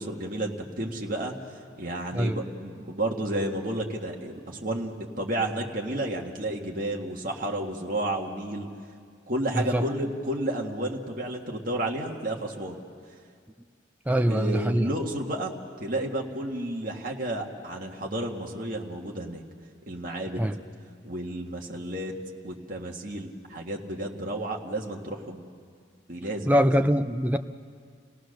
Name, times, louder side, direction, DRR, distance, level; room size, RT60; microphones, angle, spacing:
voice 1, 0.0-1.3 1.8-8.7 9.3-12.8 14.1-15.5 15.8-19.4 19.9-20.4 21.0-22.1 22.4-25.4 26.1-26.7, right 1 dB, 45° right, -1 dB, 1.7 m, -31 dB
voice 2, 9.5-9.9 14.1-14.9 20.4-20.6 26.5-27.4, equal, 10° right, 8 dB, 0.5 m, -23 dB
29.0 x 17.5 x 6.6 m, 2.1 s
head